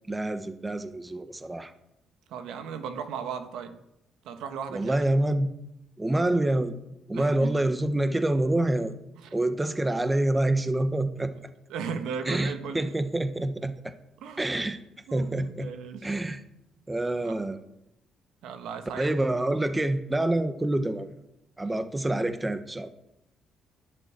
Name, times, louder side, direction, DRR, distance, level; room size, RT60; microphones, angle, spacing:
voice 1, 0.1-1.7 4.7-5.5 6.0-6.7 7.1-8.9 9.3-11.3 12.3-13.9 14.4-14.8 15.1-15.7 16.0-16.4 16.9-17.6 19.0-21.1 21.6-22.9, right 1 dB, 15° right, 10 dB, 1.3 m, -27 dB
voice 2, 2.3-3.7 4.2-5.0 7.1-7.5 9.2-9.3 11.7-12.9 14.2-14.5 15.1-16.1 17.2-17.4 18.4-19.1, right 6 dB, 90° right, 8 dB, 1.8 m, -36 dB
12.5 x 11.0 x 9.0 m, 0.84 s
cardioid pair, 90°, 0 cm